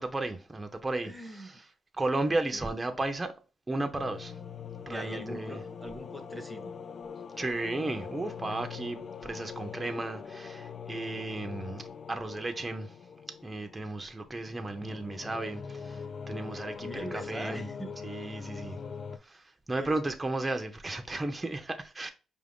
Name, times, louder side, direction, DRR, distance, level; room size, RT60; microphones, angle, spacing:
voice 1, 0.0-1.7 2.0-3.3 3.7-4.4 4.9-5.6 7.4-12.9 13.4-17.7 18.0-18.8 19.2-22.1, right 2 dB, 20° right, 0.6 m, -34 dB
voice 2, 1.0-1.6 2.3-2.7 4.9-6.7 16.8-18.0 19.7-19.9, equal, ahead, 0.9 m, -42 dB
sound 1, 4.0-19.2, left 6 dB, 45° left, 0.3 m, -43 dB
5.0 x 2.5 x 3.4 m
cardioid pair, 90°, 0 cm